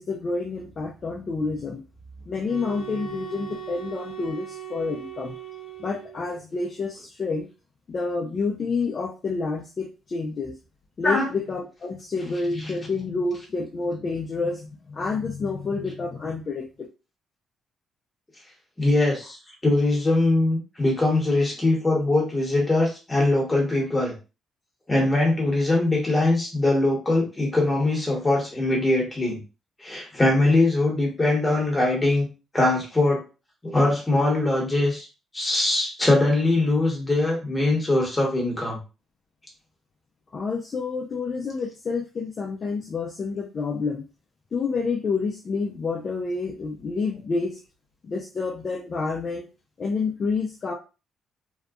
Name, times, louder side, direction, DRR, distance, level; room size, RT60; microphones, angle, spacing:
voice 1, 0.0-1.8 2.3-5.4 5.8-7.5 7.9-10.6 11.0-16.7 40.3-44.0 44.5-47.6 48.0-49.4 49.8-50.7, left 4 dB, 40° left, 0 dB, 0.4 m, -28 dB
sound 1, 2.4-6.4, right 9 dB, 65° left, 0.8 m, -38 dB
voice 2, 18.8-19.4 19.6-24.1 24.9-29.4 29.8-32.3 32.5-33.2 33.6-35.1 35.3-38.8, left 2 dB, 15° left, -2 dB, 1.1 m, -22 dB
2.7 x 2.2 x 2.3 m, 0.31 s
cardioid pair, 115°, 0 cm